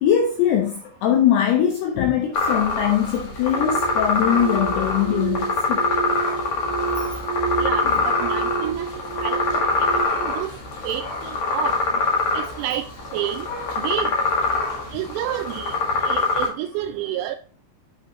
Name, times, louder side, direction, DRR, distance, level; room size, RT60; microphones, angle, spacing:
voice 1, 0.0-5.9 7.0-7.1 7.8-8.0 13.5-13.7 14.5-14.6, left 9 dB, 80° left, 2.4 m, -22 dB
sound 1, 2.3-16.5, left 3 dB, 55° left, 1.9 m, -24 dB
sound 2, 3.4-10.1, right 7 dB, 65° right, 3.2 m, -30 dB
voice 2, 7.6-8.9 9.2-10.5 10.8-11.7 12.3-12.9 13.1-13.5 13.8-14.1 14.9-15.7 16.0-17.4, right 12 dB, 85° right, 2.4 m, -29 dB
8.7 x 5.6 x 2.9 m
omnidirectional pair, 5.6 m